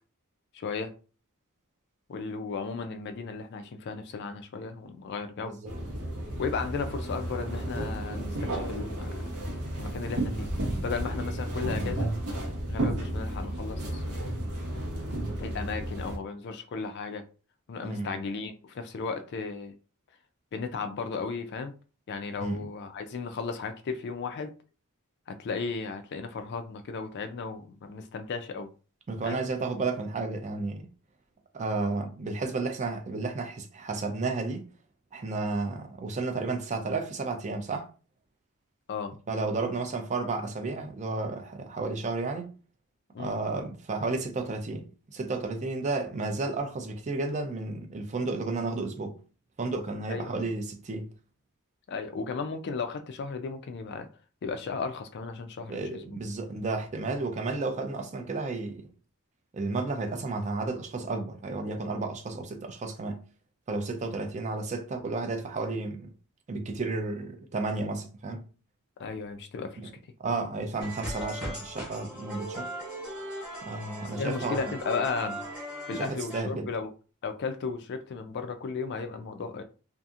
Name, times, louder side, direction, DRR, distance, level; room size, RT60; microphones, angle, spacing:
voice 1, 0.5-0.9 2.1-5.5 6.4-9.1 9.8-10.5 10.8-12.1 12.7-14.3 15.4-17.2 17.7-19.7 20.5-21.7 22.1-24.5 25.3-28.7 29.2-29.4 38.9-39.1 43.1-43.4 50.1-50.3 51.9-54.1 54.4-56.0 69.0-69.8 74.2-75.4 75.9-76.9 77.2-79.6, left 5 dB, 50° left, 0.3 m, -35 dB
sound 1, 5.7-16.2, right 1 dB, 90° right, 0.9 m, -32 dB
voice 2, 17.8-18.2 22.4-22.7 29.1-30.9 31.5-34.7 35.1-37.9 39.3-42.5 43.2-49.2 49.6-51.1 55.7-58.9 59.5-63.2 63.7-66.1 66.5-68.4 69.8-69.9 70.2-72.7 73.6-74.6 75.9-76.7, right 3 dB, 30° right, 0.4 m, -32 dB
sound 2, 70.8-76.4, equal, 5° right, 0.9 m, -38 dB
2.7 x 2.4 x 2.4 m
head